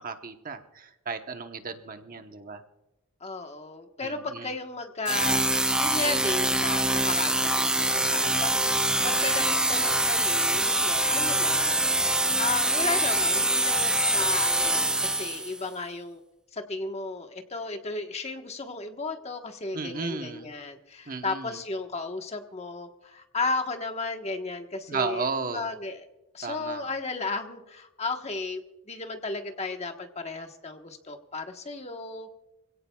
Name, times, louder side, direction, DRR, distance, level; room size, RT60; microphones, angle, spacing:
voice 1, 0.0-2.6 4.0-4.5 19.7-20.5 21.1-21.6 24.9-25.7 26.4-26.8, right 4 dB, 40° right, 7 dB, 1.0 m, -34 dB
voice 2, 3.2-16.2 16.5-26.1 26.3-32.3, left 3 dB, 30° left, 5 dB, 1.3 m, -34 dB
sound 1, 5.0-15.6, right 1 dB, 5° right, 0.4 m, -24 dB
26.0 x 17.0 x 2.4 m, 0.95 s
head